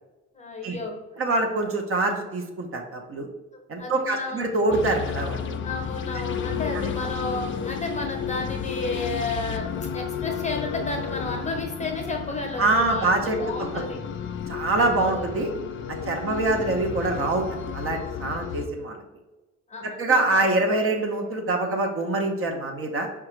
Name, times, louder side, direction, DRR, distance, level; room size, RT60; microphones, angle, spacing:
voice 1, 0.3-1.0 3.8-4.4 5.6-9.7 9.9-14.0 14.9-15.2 16.0-16.7 19.7-20.5, left 2 dB, 25° left, 2 dB, 0.8 m, -32 dB
voice 2, 1.2-3.3 3.7-5.6 12.6-13.4 14.5-15.5 16.1-17.4 17.7-19.0 19.8-23.1, right 2 dB, 45° right, 2 dB, 0.6 m, -24 dB
sound 1, 4.7-18.7, left 7 dB, 40° left, 0.4 m, -32 dB
4.7 x 2.3 x 3.0 m, 1.1 s
cardioid pair, 90°, 30 cm